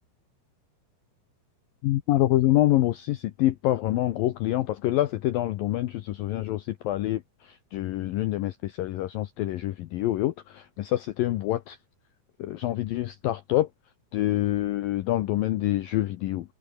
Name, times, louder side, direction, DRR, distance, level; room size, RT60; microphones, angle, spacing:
voice 1, 1.8-11.8 12.4-13.7 14.1-16.5, left 15 dB, 85° left, 2.0 m, -26 dB
omnidirectional pair, 5.3 m